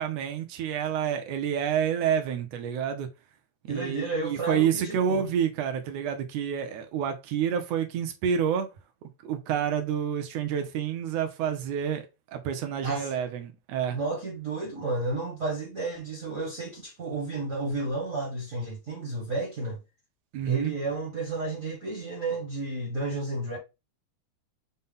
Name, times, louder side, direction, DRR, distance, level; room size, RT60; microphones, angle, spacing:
voice 1, 0.0-3.1 3.6-8.7 9.2-12.0 12.3-14.0 20.3-20.7, right 8 dB, 75° right, 1.7 m, -28 dB
voice 2, 3.7-5.3 12.8-13.1 13.9-19.8 20.4-23.6, right 2 dB, 45° right, 1.0 m, -32 dB
5.4 x 2.1 x 3.6 m
omnidirectional pair, 3.3 m